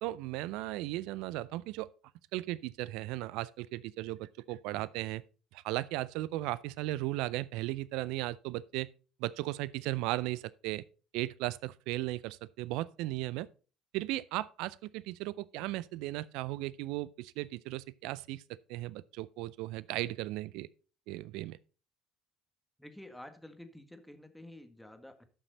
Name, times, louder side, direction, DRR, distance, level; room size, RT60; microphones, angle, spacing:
voice 1, 0.0-1.9 2.3-5.2 5.5-8.9 9.2-10.8 11.1-13.5 13.9-18.4 18.7-20.7 21.1-21.6, right 17 dB, 70° right, 0.4 m, -36 dB
voice 2, 22.8-25.3, left 1 dB, 5° left, 1.7 m, -50 dB
12.5 x 5.8 x 4.0 m
hypercardioid pair, 65°, 0 cm